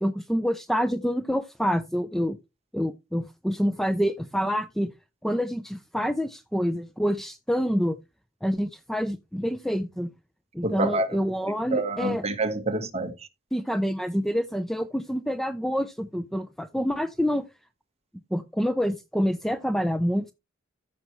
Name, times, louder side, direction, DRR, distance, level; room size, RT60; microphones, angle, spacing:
voice 1, 0.0-2.4 2.7-4.9 5.2-8.0 8.4-10.1 10.5-12.2 13.5-17.5 18.3-20.3, equal, ahead, 0.4 m, -27 dB
voice 2, 10.6-11.2 11.7-13.3, right 2 dB, 30° right, 1.2 m, -27 dB
14.0 x 5.7 x 3.0 m
head